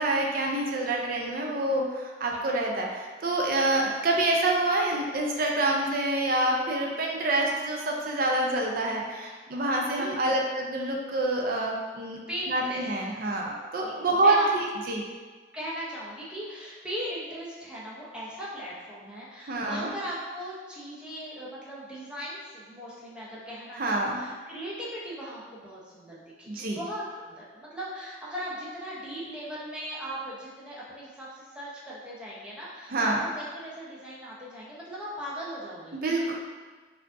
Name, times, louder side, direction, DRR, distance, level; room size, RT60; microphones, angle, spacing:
voice 1, 0.0-12.2 12.5-15.0 19.5-19.9 23.8-24.2 26.5-26.8 32.9-33.2 35.9-36.3, right 2 dB, 55° right, 0 dB, 0.5 m, -27 dB
voice 2, 9.9-10.5 12.3-12.8 13.8-14.5 15.5-36.0, equal, 5° right, -7 dB, 0.7 m, -38 dB
4.5 x 2.5 x 2.5 m, 1.4 s
head